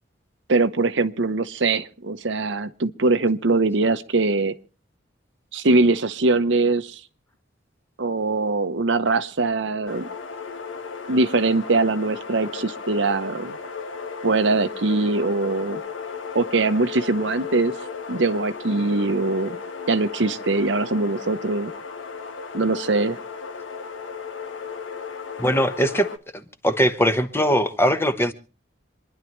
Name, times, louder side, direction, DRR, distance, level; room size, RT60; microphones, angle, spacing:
voice 1, 0.5-4.5 5.5-7.0 8.0-10.1 11.1-13.6 14.2-15.8 16.3-17.7 18.1-19.6 19.9-21.7 22.5-23.2, right 3 dB, 70° right, 0.9 m, -22 dB
sound 1, 9.9-26.2, left 5 dB, 85° left, 1.2 m, -35 dB
voice 2, 25.4-26.1 26.3-28.3, equal, 15° left, 1.0 m, -21 dB
27.0 x 10.5 x 3.1 m
head